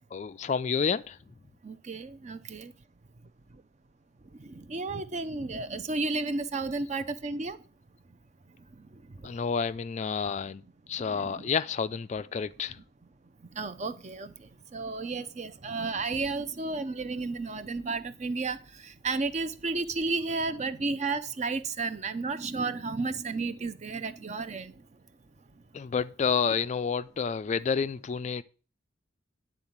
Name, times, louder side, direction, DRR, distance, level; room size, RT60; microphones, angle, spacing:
voice 1, 0.1-1.2 9.2-10.6 10.9-12.8 25.7-28.4, left 6 dB, 35° left, 0.3 m, -29 dB
voice 2, 1.6-2.7 4.3-7.6 8.7-9.3 11.0-11.5 13.5-24.9, right 3 dB, 35° right, 0.6 m, -33 dB
9.7 x 3.8 x 7.3 m
head